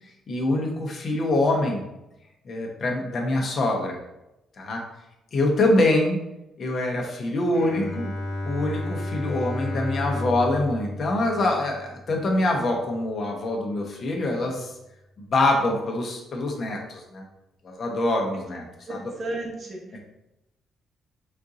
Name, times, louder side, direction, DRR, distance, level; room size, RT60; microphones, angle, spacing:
voice 1, 0.3-1.9 2.4-4.0 4.6-4.8 5.3-6.2 6.6-8.1 8.4-14.7 15.2-17.2 17.6-19.1 19.9-20.0, left 2 dB, 50° left, 0 dB, 1.0 m, -25 dB
Bowed string instrument, 7.5-12.8, left 1 dB, 80° left, 1.2 m, -33 dB
voice 2, 18.9-20.0, right 2 dB, 45° right, -1 dB, 1.2 m, -34 dB
4.4 x 2.6 x 3.8 m, 0.90 s
cardioid pair, 90°, 0 cm